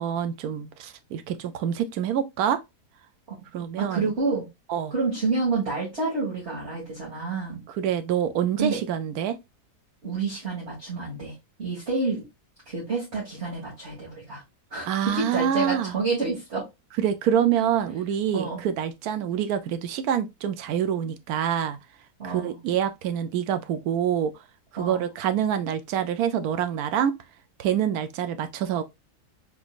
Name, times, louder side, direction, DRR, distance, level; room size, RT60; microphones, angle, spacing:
voice 1, 0.0-2.6 3.5-4.1 4.7-4.9 7.8-9.4 14.9-15.9 17.0-21.8 22.2-24.3 24.7-27.1 27.6-28.8, right 9 dB, 70° right, 1.0 m, -26 dB
voice 2, 3.8-4.5 4.9-7.6 8.6-8.8 10.0-12.2 12.7-14.4 14.7-16.7 18.3-18.6 22.2-22.6 24.8-25.0, right 3 dB, 40° right, 1.9 m, -29 dB
3.7 x 3.5 x 2.4 m
omnidirectional pair, 1.8 m